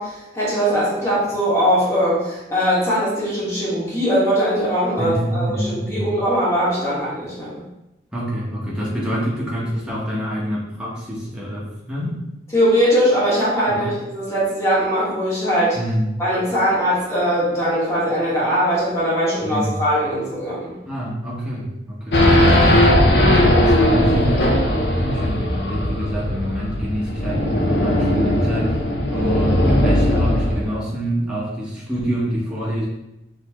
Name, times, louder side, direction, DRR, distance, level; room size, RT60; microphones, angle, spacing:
voice 1, 0.0-7.5 12.5-15.8 16.2-20.7, equal, 15° left, -8 dB, 1.5 m, -20 dB
voice 2, 5.0-6.1 8.1-12.1 13.6-13.9 15.7-16.1 19.4-19.9 20.9-22.6 23.1-24.5 25.0-28.8 29.1-32.9, equal, 5° right, -7 dB, 0.9 m, -26 dB
Race car auto racing / Idling / Accelerating revving vroom, 22.1-30.7, left 1 dB, 75° left, 0.7 m, -18 dB
4.2 x 3.3 x 3.0 m, 0.91 s
head